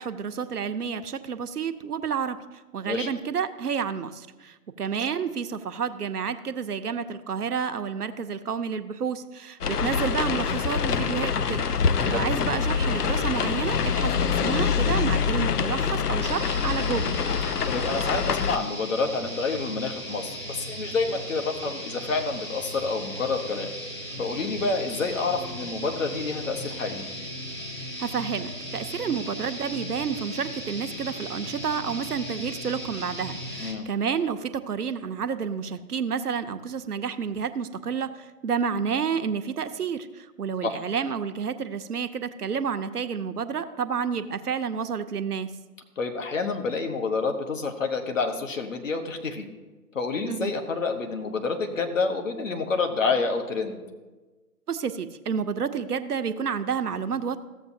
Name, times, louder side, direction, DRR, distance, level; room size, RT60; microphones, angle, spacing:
voice 1, 0.0-2.4 2.7-11.6 12.0-17.2 28.0-45.5 50.3-50.5 54.7-57.4, right 6 dB, 75° right, 9 dB, 0.8 m, -30 dB
sound 1, 9.6-18.6, left 6 dB, 75° left, 0.6 m, -25 dB
sound 2, 16.2-33.7, equal, 20° left, 0.7 m, -37 dB
voice 2, 17.7-23.7 24.2-27.1 33.6-33.8 40.6-40.8 46.0-49.5 49.9-53.8, left 4 dB, 55° left, 4 dB, 1.3 m, -28 dB
14.5 x 7.3 x 2.7 m, 1.2 s
figure-of-eight pair, 145°, 47 cm